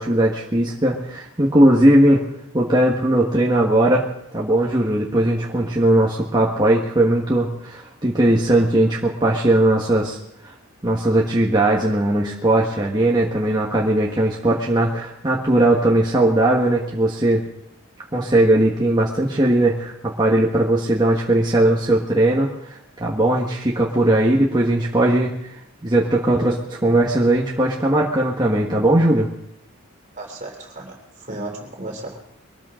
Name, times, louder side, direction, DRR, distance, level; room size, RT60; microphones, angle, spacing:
voice 1, 0.0-2.2 2.5-4.0 4.3-10.2 10.4-10.5 10.8-17.4 18.1-25.3 25.8-29.3, right 1 dB, 20° right, -3 dB, 1.5 m, -18 dB
voice 2, 30.2-32.2, right 2 dB, 35° right, 1 dB, 3.3 m, -34 dB
23.0 x 13.5 x 3.8 m, 0.76 s
head